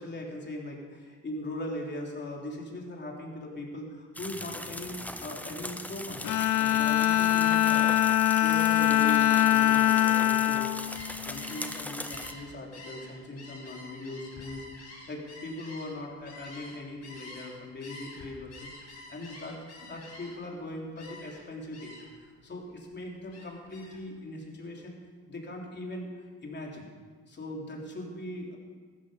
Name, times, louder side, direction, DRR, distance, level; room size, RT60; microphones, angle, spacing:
voice 1, 0.0-6.2 6.6-18.7 19.1-24.9 25.3-26.9 27.3-28.6, left 1 dB, 35° left, -1 dB, 3.4 m, -40 dB
sound 1, 4.1-12.3, left 1 dB, 5° left, 0.9 m, -40 dB
Bowed string instrument, 6.2-11.8, left 12 dB, 75° left, 0.8 m, -24 dB
Gull seagull, 10.7-17.5 17.8-20.5 21.0-21.4 21.7-22.2 22.6-24.0, left 2 dB, 60° left, 5.0 m, -48 dB
15.0 x 13.0 x 5.1 m, 1.6 s
cardioid pair, 90°, 30 cm